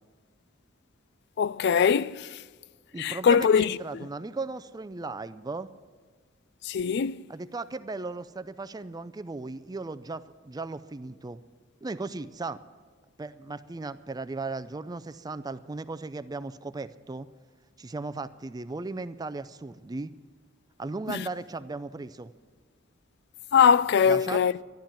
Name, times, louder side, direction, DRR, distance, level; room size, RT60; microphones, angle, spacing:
voice 1, 1.4-2.3 3.0-3.7 6.7-7.2 23.5-24.5, left 7 dB, 60° left, 0.4 m, -21 dB
voice 2, 2.9-5.7 7.3-11.4 11.8-12.6 13.2-17.3 17.8-20.1 20.8-22.3 24.0-24.4, right 3 dB, 20° right, 0.4 m, -36 dB
13.0 x 11.5 x 7.5 m
head